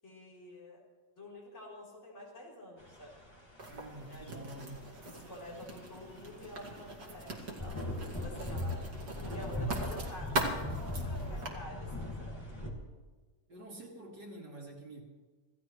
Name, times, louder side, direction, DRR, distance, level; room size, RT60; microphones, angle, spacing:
voice 1, 0.0-0.8 1.2-3.1 4.1-4.5 5.0-7.8 8.2-8.8 9.2-12.4, left 1 dB, 40° left, -4 dB, 4.4 m, -48 dB
sound 1, 2.8-12.7, left 1 dB, 15° left, 2.5 m, -41 dB
Writing, 3.6-11.5, right 2 dB, 65° right, 2.8 m, -41 dB
voice 2, 3.7-4.9 8.5-8.8 13.5-15.0, right 1 dB, 85° right, -5 dB, 4.2 m, -47 dB
26.5 x 15.5 x 3.2 m, 1.4 s
omnidirectional pair, 1.8 m